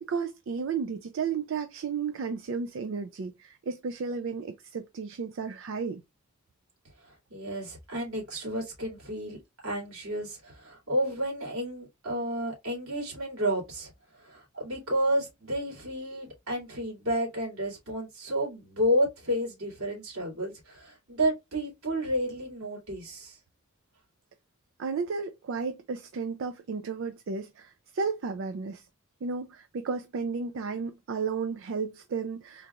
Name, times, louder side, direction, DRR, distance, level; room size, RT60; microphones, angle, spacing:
voice 1, 0.0-6.0 24.8-28.9 29.2-32.7, right 5 dB, 65° right, 0.4 m, -33 dB
voice 2, 7.0-13.9 14.2-23.4, equal, 80° right, 2.5 m, -31 dB
3.8 x 2.4 x 2.9 m
head